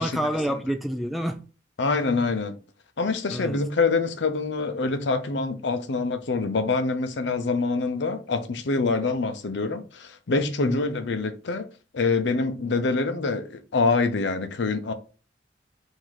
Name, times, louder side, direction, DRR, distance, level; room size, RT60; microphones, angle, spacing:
voice 1, 0.0-1.4 3.3-3.6 10.6-10.9, equal, ahead, 0.3 m, -28 dB
voice 2, 1.8-2.6 3.0-11.7 11.9-14.9, left 3 dB, 70° left, 0.6 m, -25 dB
3.9 x 2.7 x 4.6 m
head